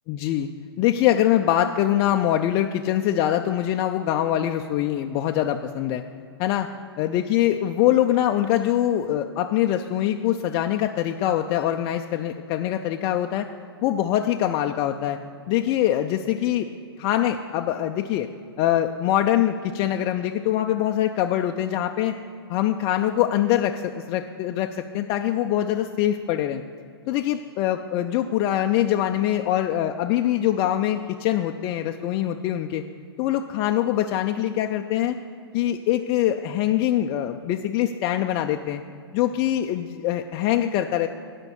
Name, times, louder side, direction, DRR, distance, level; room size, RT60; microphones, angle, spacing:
voice 1, 0.1-0.5 0.8-6.0 6.4-6.7 7.0-13.5 13.8-15.2 15.5-16.7 17.0-18.3 18.6-22.1 22.5-26.6 27.1-32.8 33.2-35.2 35.5-38.8 39.1-41.1, left 12 dB, 30° left, 4 dB, 0.3 m, -23 dB
10.5 x 5.2 x 7.0 m, 2.4 s
hypercardioid pair, 120°, 14 cm